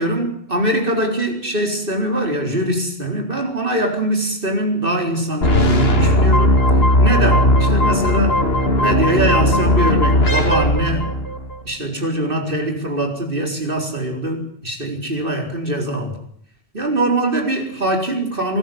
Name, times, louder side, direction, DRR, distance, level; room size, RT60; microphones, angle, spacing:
voice 1, 0.0-6.6 7.0-8.4 8.8-11.2 11.6-16.1 16.7-18.6, right 1 dB, 55° right, 3 dB, 4.7 m, -22 dB
sound 1, 5.4-11.6, left 1 dB, 70° left, 2.7 m, -16 dB
23.5 x 14.0 x 9.4 m, 0.67 s
omnidirectional pair, 1.1 m